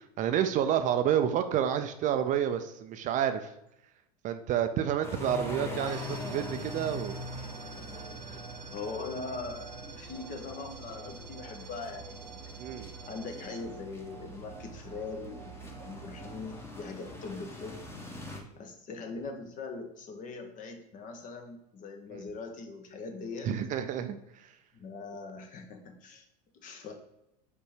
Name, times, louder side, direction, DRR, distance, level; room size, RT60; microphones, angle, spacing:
voice 1, 0.0-3.5 4.2-7.1 12.6-12.9 22.1-22.2 23.4-24.2, right 9 dB, 40° right, 9 dB, 0.5 m, -29 dB
sound 1, 5.0-18.4, left 1 dB, 10° left, 1.3 m, -43 dB
sound 2, 5.8-16.6, right 6 dB, 90° right, 1.0 m, -47 dB
voice 2, 8.7-12.5 13.0-17.8 18.6-23.5 24.7-26.2 26.5-26.9, left 4 dB, 40° left, 5 dB, 1.3 m, -41 dB
5.1 x 4.5 x 4.9 m, 0.83 s
hypercardioid pair, 90°, 21 cm